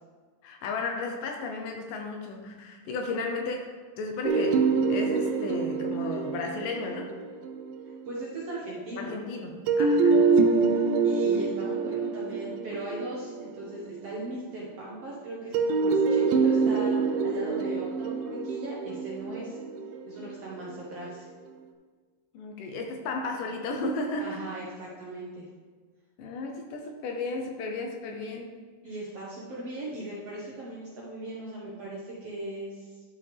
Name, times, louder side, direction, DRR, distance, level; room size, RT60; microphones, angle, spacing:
voice 1, 0.4-7.1 9.0-10.2 19.3-19.5 22.3-24.4 26.2-28.6, left 3 dB, 75° left, 2 dB, 2.2 m, -34 dB
sound 1, 4.2-8.1 9.7-14.1 15.5-20.7, right 4 dB, 80° right, 2.3 m, -26 dB
voice 2, 8.1-9.1 9.9-10.4 10.7-19.6 20.0-21.3 24.2-25.5 28.8-33.0, right 1 dB, 60° right, -5 dB, 1.7 m, -39 dB
11.5 x 5.4 x 3.4 m, 1.5 s
omnidirectional pair, 4.2 m